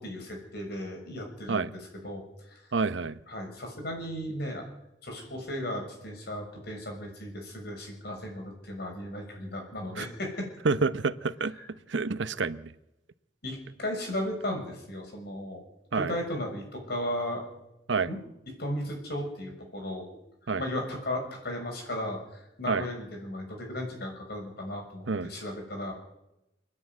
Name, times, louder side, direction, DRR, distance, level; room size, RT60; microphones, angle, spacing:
voice 1, 0.0-1.7 2.0-2.7 3.3-4.6 5.0-10.5 11.5-11.6 13.4-15.6 15.9-17.4 18.1-18.2 18.6-20.1 20.6-25.9, left 1 dB, 60° left, 6.6 m, -35 dB
voice 2, 2.7-3.2 10.0-10.1 10.6-12.7 15.9-16.1 17.9-18.1 20.5-20.6 22.7-22.9 25.1-25.3, right 4 dB, 80° right, 0.8 m, -28 dB
28.5 x 9.8 x 9.4 m
head